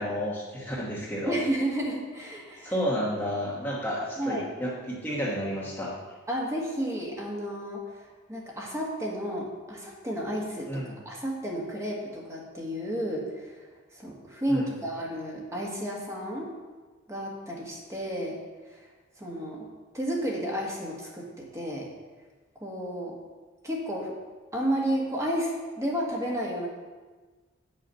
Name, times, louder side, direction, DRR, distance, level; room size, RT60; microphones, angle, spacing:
voice 1, 0.0-1.4 2.6-5.9 10.7-11.0 14.5-14.7, equal, 10° left, -5 dB, 1.2 m, -31 dB
voice 2, 1.2-2.7 4.2-4.5 6.3-8.0 8.3-13.6 13.9-16.5 17.1-18.4 18.7-18.8 19.2-19.7 19.9-21.9 22.6-23.2 23.6-24.1 24.5-26.7, equal, 15° right, -2 dB, 1.5 m, -32 dB
8.4 x 6.6 x 5.5 m, 1.3 s
head